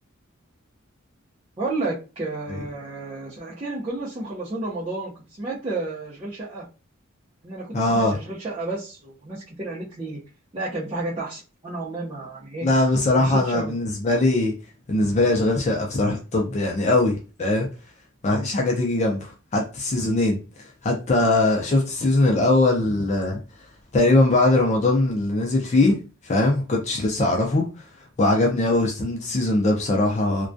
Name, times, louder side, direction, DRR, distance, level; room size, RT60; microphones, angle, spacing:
voice 1, 1.6-6.7 7.4-10.2 10.5-12.7 13.1-13.8, right 2 dB, 25° right, 0.5 m, -31 dB
voice 2, 7.7-8.2 12.6-14.5 14.9-17.7 18.2-20.4 20.8-23.4 23.9-26.0 26.2-27.6 28.2-30.5, left 2 dB, 35° left, 0.4 m, -21 dB
2.3 x 2.2 x 2.5 m
head